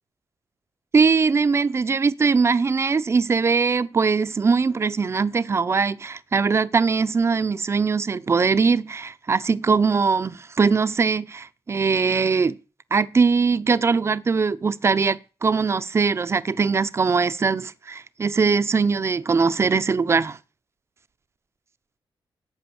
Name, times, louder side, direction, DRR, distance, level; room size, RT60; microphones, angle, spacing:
voice 1, 0.9-12.6 12.9-20.4, right 5 dB, 30° right, 0.7 m, -21 dB
17.0 x 8.9 x 7.1 m
wide cardioid pair, 170°, 9 cm